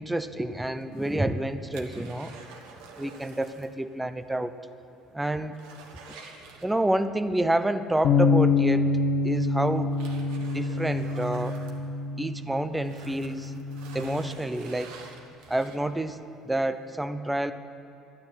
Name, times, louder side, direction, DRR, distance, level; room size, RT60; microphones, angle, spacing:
voice 1, 0.0-2.3 3.0-4.5 5.1-5.6 6.6-8.9 9.2-9.9 10.4-11.6 12.2-13.5 13.9-14.9 15.5-16.2 16.4-17.5, right 1 dB, 10° right, 11 dB, 0.6 m, -28 dB
sound 1, 0.8-3.8 4.1-4.2 4.6-4.7 5.1-7.1 8.5-8.6 9.3-12.4 12.7-16.1 16.6-16.7, right 4 dB, 90° right, 1.4 m, -48 dB
sound 2, 8.0-14.3, left 4 dB, 70° left, 0.9 m, -26 dB
12.0 x 9.7 x 8.9 m, 2.7 s
cardioid pair, 105°, 0 cm